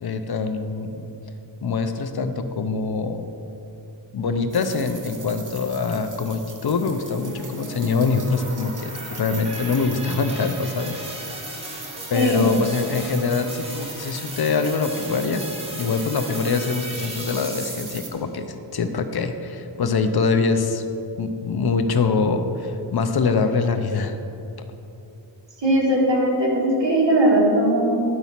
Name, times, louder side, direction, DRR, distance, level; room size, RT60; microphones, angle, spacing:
voice 1, 0.0-1.1 1.6-3.3 4.1-10.9 12.1-15.4 15.7-20.8 21.2-24.1, left 4 dB, 55° left, 8 dB, 0.7 m, -24 dB
sound 1, 4.5-18.1, right 4 dB, 40° right, 1.0 m, -39 dB
sound 2, 7.1-18.2, equal, 10° right, 1.6 m, -37 dB
voice 2, 12.1-12.5 25.6-28.0, right 1 dB, 65° right, -3 dB, 2.0 m, -19 dB
9.7 x 4.1 x 5.8 m, 2.8 s
wide cardioid pair, 80°, 47 cm